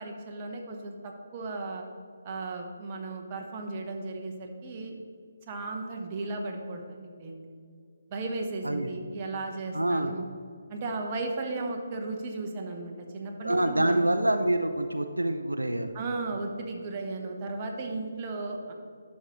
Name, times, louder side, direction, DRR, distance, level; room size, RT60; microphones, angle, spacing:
voice 1, 0.0-1.8 2.2-5.0 5.5-7.5 8.1-10.3 10.7-14.0 15.9-18.7, right 3 dB, 30° right, 2 dB, 1.0 m, -35 dB
voice 2, 9.7-10.1 13.4-15.9, right 1 dB, 80° right, 7 dB, 0.5 m, -26 dB
10.5 x 6.4 x 3.1 m, 2.3 s
figure-of-eight pair, 145°, 0 cm